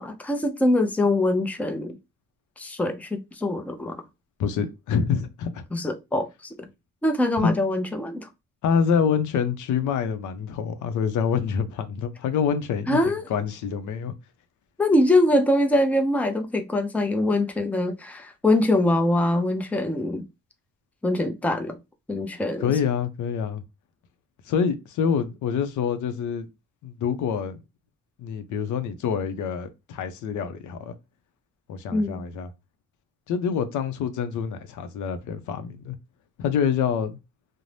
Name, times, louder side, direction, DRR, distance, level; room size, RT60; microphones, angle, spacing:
voice 1, 0.0-2.0 2.6-4.0 5.7-6.7 7.0-8.3 12.9-13.2 14.8-20.2 21.0-21.8 22.1-22.7 31.9-32.2, left 1 dB, 5° left, 0.5 m, -23 dB
voice 2, 4.4-5.6 7.4-7.5 8.6-13.0 13.3-14.1 22.6-23.6 24.5-26.5 26.8-27.6 28.2-30.9 31.7-32.5 33.3-35.9 36.4-37.2, left 7 dB, 75° left, 0.6 m, -26 dB
2.6 x 2.1 x 3.1 m
cardioid pair, 90°, 30 cm